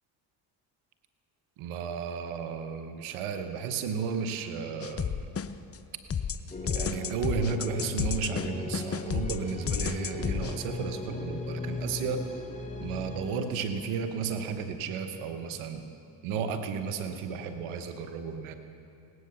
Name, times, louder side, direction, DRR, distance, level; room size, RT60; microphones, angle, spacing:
voice 1, 1.6-5.3 6.7-12.4 12.8-15.8 16.2-18.5, right 6 dB, 85° right, 7 dB, 1.1 m, -33 dB
sound 1, 4.8-5.8 6.1-10.6, left 7 dB, 30° left, 0.7 m, -32 dB
sound 2, 6.5-13.4, left 2 dB, 15° left, 2.3 m, -38 dB
17.5 x 11.0 x 6.8 m, 2.6 s
supercardioid pair, 60°, 48 cm